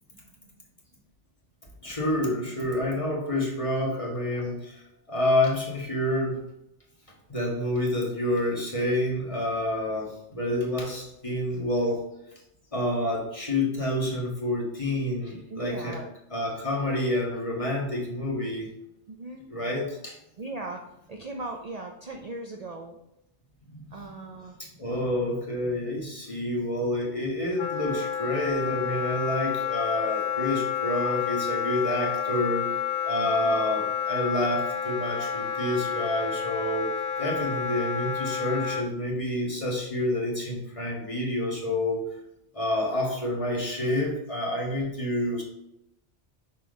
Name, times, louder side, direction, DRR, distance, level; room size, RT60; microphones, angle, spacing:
voice 1, 1.8-4.8 5.1-6.4 7.3-12.0 12.7-16.0 16.3-18.7 19.5-20.1 23.7-24.1 24.6-32.7 33.0-42.0 42.5-45.4, left 1 dB, 30° left, -2 dB, 1.7 m, -28 dB
voice 2, 15.5-16.1 19.1-19.4 20.4-20.8 21.1-23.0 23.9-24.6 33.4-33.5, right 2 dB, 45° right, 3 dB, 0.6 m, -38 dB
Wind instrument woodwind instrument, 27.6-38.9, left 8 dB, 60° left, 0.6 m, -30 dB
5.6 x 4.4 x 5.2 m, 0.82 s
omnidirectional pair, 1.2 m